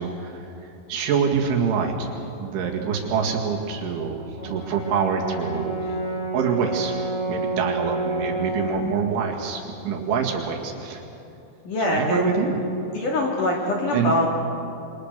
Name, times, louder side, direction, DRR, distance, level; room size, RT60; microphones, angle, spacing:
voice 1, 0.0-2.1 2.4-6.0 6.3-7.0 7.3-11.0 11.9-12.6 13.9-14.1, right 6 dB, 70° right, 1 dB, 4.4 m, -26 dB
Brass instrument, 4.4-8.7, right 2 dB, 10° left, 7.1 m, -28 dB
voice 2, 11.6-12.5 12.9-14.3, left 1 dB, 50° left, -1 dB, 3.0 m, -23 dB
27.5 x 25.5 x 6.7 m, 2.9 s
omnidirectional pair, 5.8 m